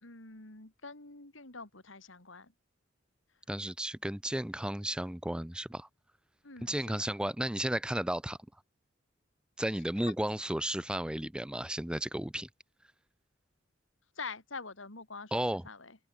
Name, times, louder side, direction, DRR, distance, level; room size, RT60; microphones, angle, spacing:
voice 1, 0.0-2.5 6.4-7.1 10.0-10.1 14.2-16.0, left 4 dB, 75° left, 3.7 m, -46 dB
voice 2, 3.5-5.9 6.6-8.4 9.6-12.5 15.3-15.7, right 1 dB, 5° right, 0.6 m, -33 dB
open air
head